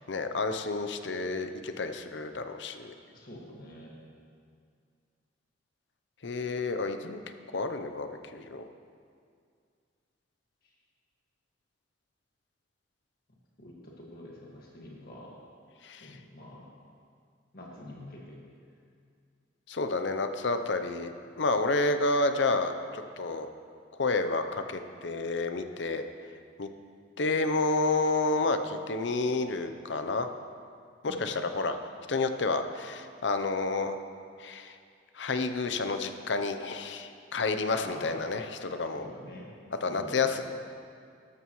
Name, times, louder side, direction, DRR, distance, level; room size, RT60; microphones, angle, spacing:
voice 1, 0.0-2.9 6.2-8.6 15.8-16.2 19.7-23.5 23.9-26.1 26.6-26.7 27.2-30.3 31.0-31.8 32.1-34.0 34.4-34.8 35.1-39.1 39.8-40.6, left 3 dB, 70° left, 8 dB, 0.7 m, -30 dB
voice 2, 3.1-3.9 10.6-10.7 13.6-15.4 16.0-16.7 17.5-18.4 31.0-31.3 37.8-38.3 38.9-39.5 39.8-40.6, left 1 dB, 55° left, -3 dB, 1.9 m, -46 dB
13.0 x 12.5 x 3.1 m, 2.3 s
head